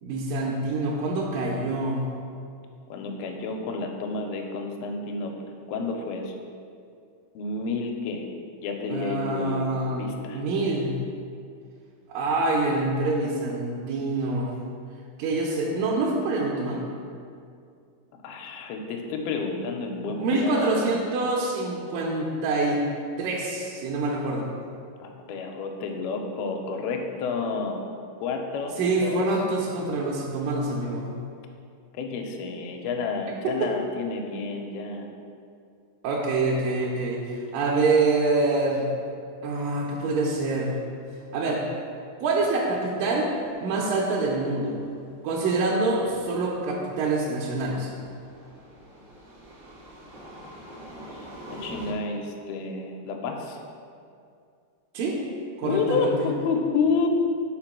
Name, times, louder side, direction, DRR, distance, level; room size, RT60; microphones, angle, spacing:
voice 1, 0.0-2.1 8.9-10.1 10.3-11.0 12.1-14.6 15.2-16.9 20.0-22.9 23.2-24.5 28.8-31.1 33.4-33.7 36.0-38.9 39.4-40.8 41.3-41.7 42.2-43.3 43.6-44.8 45.2-47.9 54.9-55.2 55.6-56.3, right 2 dB, 80° right, -4 dB, 2.0 m, -26 dB
voice 2, 2.9-5.3 5.7-6.4 7.4-8.3 8.6-9.7 10.0-10.4 18.2-21.0 25.0-27.8 28.2-29.2 31.9-35.1 51.1-53.6 55.6-57.1, left 4 dB, 80° left, 3 dB, 2.4 m, -30 dB
sound 1, 43.4-51.9, right 1 dB, 50° right, 0.8 m, -45 dB
5.9 x 4.4 x 5.9 m, 2.4 s
omnidirectional pair, 4.5 m